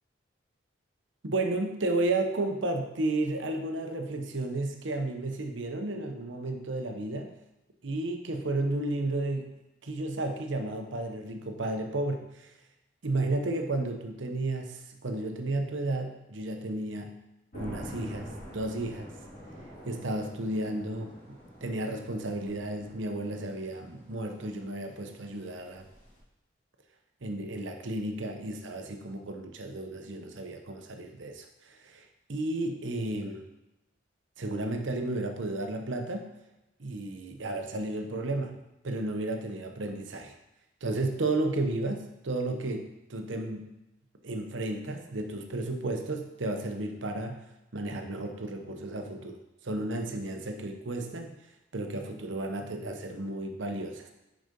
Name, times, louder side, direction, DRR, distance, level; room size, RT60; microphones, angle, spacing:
voice 1, 1.2-7.3 7.8-9.6 9.8-12.5 13.0-17.1 17.5-19.1 19.9-25.9 27.2-31.5 31.8-32.0 32.3-33.4 34.4-36.3 36.8-40.3 40.8-43.7 44.2-47.4 47.7-49.4 49.6-51.4 51.7-54.1, right 2 dB, 85° right, 5 dB, 0.9 m, -33 dB
sound 1, 17.5-26.2, equal, 45° left, 2.5 m, -47 dB
6.5 x 5.1 x 5.2 m, 0.92 s
head